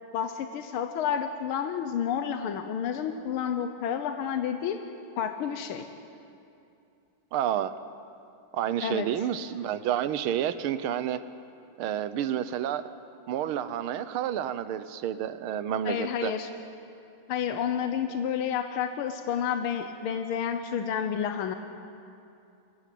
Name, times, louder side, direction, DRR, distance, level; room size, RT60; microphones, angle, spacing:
voice 1, 0.1-4.8 5.2-5.9 8.8-9.1 15.8-16.5 17.3-21.5, left 8 dB, 85° left, 7 dB, 1.8 m, -30 dB
voice 2, 7.3-7.7 8.5-11.2 11.8-12.8 13.3-16.3, right 10 dB, 90° right, 13 dB, 1.7 m, -29 dB
24.0 x 15.5 x 8.5 m, 2.6 s
omnidirectional pair, 2.3 m